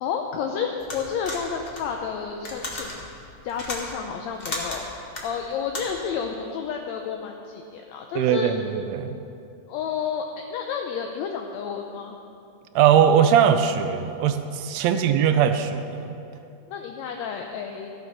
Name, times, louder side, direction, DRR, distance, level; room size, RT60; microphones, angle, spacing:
voice 1, 0.0-4.9 5.2-8.5 9.7-12.2 16.7-17.9, left 7 dB, 75° left, 2 dB, 1.8 m, -31 dB
sound 1, 0.8-6.1, left 1 dB, 25° left, 1.3 m, -35 dB
voice 2, 8.2-9.2 12.8-16.2, right 8 dB, 80° right, 9 dB, 1.6 m, -20 dB
14.5 x 9.1 x 5.7 m, 2.7 s
omnidirectional pair, 3.5 m